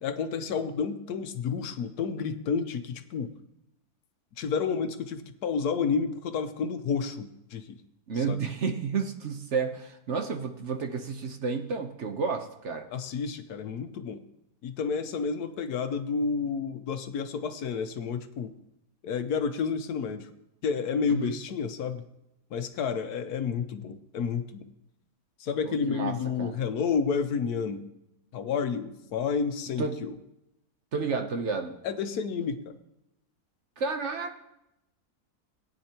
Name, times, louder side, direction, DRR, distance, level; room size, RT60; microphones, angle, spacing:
voice 1, 0.0-3.3 4.4-7.8 8.3-8.4 12.9-14.2 14.6-18.5 19.0-20.3 20.6-22.0 22.5-24.6 25.4-27.8 28.3-30.1 31.8-32.7, left 6 dB, 80° left, 9 dB, 1.3 m, -30 dB
voice 2, 8.1-12.9 21.1-21.3 25.6-26.6 29.8-30.0 30.9-31.8 33.8-34.4, right 5 dB, 55° right, 4 dB, 1.1 m, -31 dB
19.0 x 9.5 x 2.9 m, 0.87 s
omnidirectional pair, 1.6 m